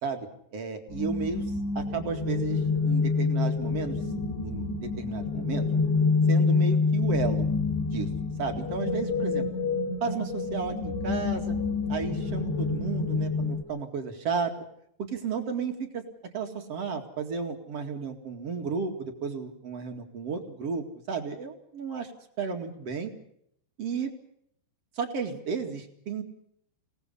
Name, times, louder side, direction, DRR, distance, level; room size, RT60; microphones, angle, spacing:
voice 1, 0.0-1.4 1.7-4.0 4.4-5.7 6.3-7.5 7.9-8.1 8.4-9.4 10.0-11.5 11.9-14.5 15.0-16.0 16.3-22.1 22.4-23.1 23.8-24.1 25.0-26.2, right 5 dB, 45° right, 4 dB, 2.5 m, -33 dB
sound 1, 0.9-13.6, left 4 dB, 80° left, 5.6 m, -27 dB
29.0 x 18.5 x 5.7 m, 0.72 s
omnidirectional pair, 5.2 m